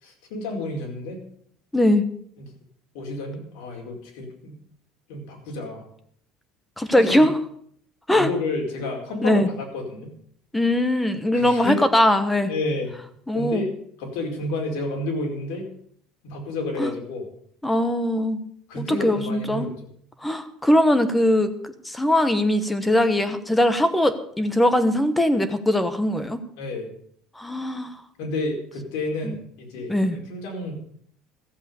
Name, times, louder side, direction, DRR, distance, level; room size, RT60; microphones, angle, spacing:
voice 1, 0.0-1.2 2.4-2.5 2.9-4.6 5.1-5.8 6.9-7.3 8.1-10.1 11.3-11.8 12.5-12.9 13.3-13.7 14.0-15.7 16.2-17.3 18.7-19.9 26.6-26.9 28.2-30.8, left 2 dB, 80° left, 1 dB, 4.7 m, -30 dB
voice 2, 1.7-2.0 6.8-7.3 8.1-8.3 9.2-9.5 10.5-12.5 13.3-13.6 16.8-16.9 17.6-18.4 18.8-19.7 20.2-21.5 21.8-26.4 27.4-28.0 29.2-29.3 29.9-30.2, left 1 dB, 5° left, 11 dB, 1.1 m, -21 dB
14.5 x 8.0 x 6.8 m, 0.64 s
cardioid pair, 140°, 0 cm